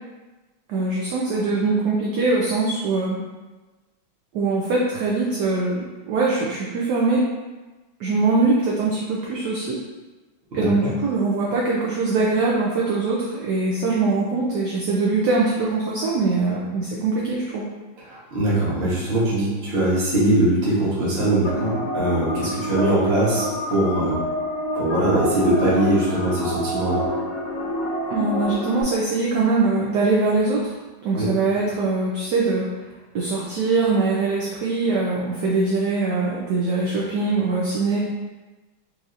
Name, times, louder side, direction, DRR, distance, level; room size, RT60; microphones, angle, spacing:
voice 1, 0.7-3.2 4.3-7.2 8.0-9.8 10.5-17.7 28.1-30.7 31.0-32.7 33.1-38.0, right 3 dB, 70° right, -4 dB, 1.0 m, -22 dB
voice 2, 10.5-10.9 18.0-24.2 24.7-27.0 31.1-31.3, right 1 dB, 40° right, -7 dB, 1.1 m, -21 dB
sound 1, 21.4-28.8, equal, 70° left, 1.4 m, -28 dB
4.7 x 2.7 x 2.5 m, 1.2 s
omnidirectional pair, 2.2 m